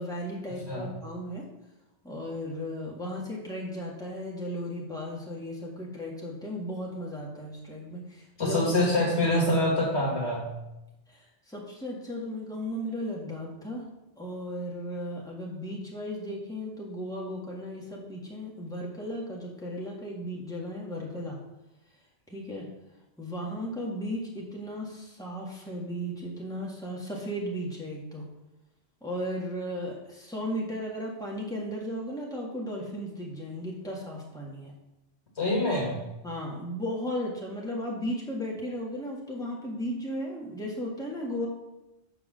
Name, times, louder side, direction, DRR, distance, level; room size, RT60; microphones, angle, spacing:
voice 1, 0.0-1.5 2.0-8.6 11.1-13.9 14.2-21.4 22.3-22.7 23.2-28.2 29.0-34.7 36.2-41.5, equal, 5° left, -3 dB, 1.8 m, -35 dB
voice 2, 8.4-10.5 35.4-36.0, left 1 dB, 75° left, -2 dB, 2.2 m, -25 dB
8.2 x 4.9 x 6.3 m, 0.96 s
omnidirectional pair, 1.1 m